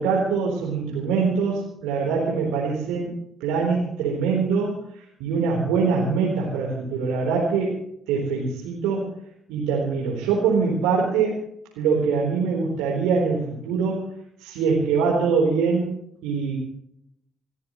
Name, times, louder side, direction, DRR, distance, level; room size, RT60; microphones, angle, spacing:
voice 1, 0.0-3.1 3.4-4.8 5.2-7.8 8.1-9.1 9.5-11.4 11.8-14.1 14.4-15.9 16.2-16.6, right 5 dB, 75° right, -3 dB, 3.9 m, -23 dB
29.5 x 13.0 x 3.1 m, 0.74 s
hypercardioid pair, 45°, 0 cm